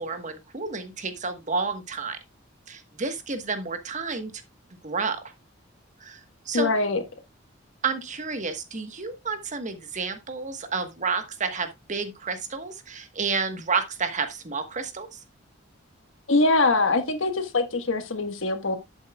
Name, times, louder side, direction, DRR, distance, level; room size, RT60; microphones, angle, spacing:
voice 1, 0.0-2.2 2.7-4.3 4.8-5.2 6.0-6.7 7.8-15.2, right 4 dB, 40° right, 1.3 m, -30 dB
voice 2, 6.5-7.0 16.3-18.8, left 3 dB, 75° left, 1.4 m, -23 dB
10.5 x 8.4 x 2.3 m
head